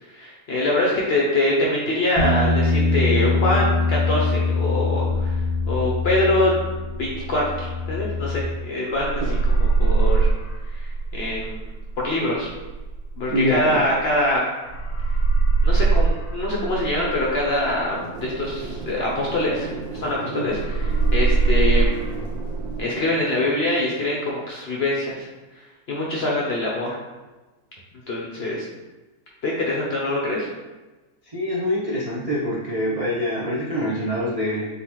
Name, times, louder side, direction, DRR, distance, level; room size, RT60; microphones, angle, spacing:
voice 1, 0.1-5.3 5.7-6.5 7.0-9.2 9.6-10.3 10.7-10.9 11.1-11.6 12.0-12.5 13.2-14.4 15.6-18.0 18.2-19.7 20.0-20.6 21.1-22.0 22.8-25.3 25.9-27.0 28.1-28.7 29.4-30.5, left 1 dB, 55° left, -3 dB, 0.7 m, -24 dB
Bass guitar, 2.2-8.4, left 3 dB, 10° left, 1.0 m, -23 dB
sound 1, 5.1-8.6 8.9-14.3 14.6-20.1 20.4-22.8, right 4 dB, 90° left, 1.3 m, -23 dB
voice 2, 13.3-13.8 20.3-20.6 31.2-34.7, equal, 55° right, -7 dB, 0.4 m, -25 dB
sound 2, 17.9-23.5, right 3 dB, 80° right, 1.6 m, -36 dB
3.8 x 3.7 x 3.0 m, 1.2 s
omnidirectional pair, 1.7 m